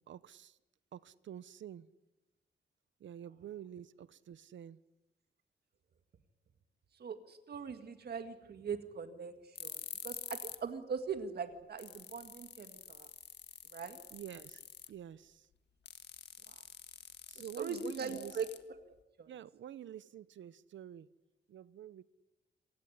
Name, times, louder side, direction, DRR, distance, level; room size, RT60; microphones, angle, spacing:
voice 1, 0.1-0.6 0.9-1.9 3.0-4.8 14.1-14.6 14.9-15.5 17.3-18.3 19.3-21.1 21.5-22.0, right 10 dB, 90° right, 18 dB, 0.9 m, -48 dB
voice 2, 7.0-13.1 13.7-14.0 16.5-16.6 17.6-18.5 19.2-19.3, right 6 dB, 60° right, 8 dB, 2.0 m, -41 dB
sound 1, 9.6-10.7 11.0-11.1 11.5-11.6 11.8-15.0 15.9-19.0, left 8 dB, 65° left, 1.7 m, -48 dB
27.0 x 16.5 x 9.9 m, 0.95 s
wide cardioid pair, 170°, 19 cm